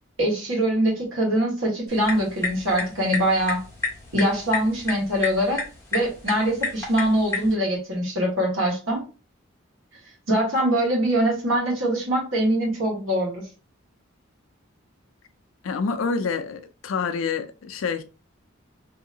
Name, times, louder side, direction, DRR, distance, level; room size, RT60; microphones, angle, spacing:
voice 1, 0.2-3.6 4.1-5.6 5.9-9.0 10.3-13.4, right 1 dB, 80° right, 1.4 m, -23 dB
sound 1, 1.9-7.5, left 3 dB, 15° left, 0.8 m, -32 dB
voice 2, 15.6-18.0, left 5 dB, 80° left, 0.4 m, -27 dB
2.8 x 2.7 x 2.7 m
head